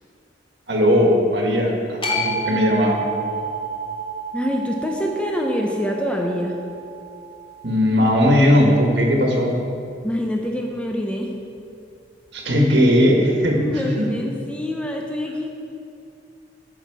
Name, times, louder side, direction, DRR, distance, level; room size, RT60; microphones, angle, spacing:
voice 1, 0.7-3.0 7.6-9.6 12.3-13.6 14.0-14.1, equal, 65° right, 0 dB, 1.5 m, -18 dB
sound 1, 2.0-8.2, right 2 dB, 30° left, 1.3 m, -30 dB
voice 2, 4.3-6.6 10.0-11.3 13.5-15.5, equal, 5° left, 0 dB, 0.7 m, -25 dB
13.5 x 6.0 x 4.8 m, 2.6 s
head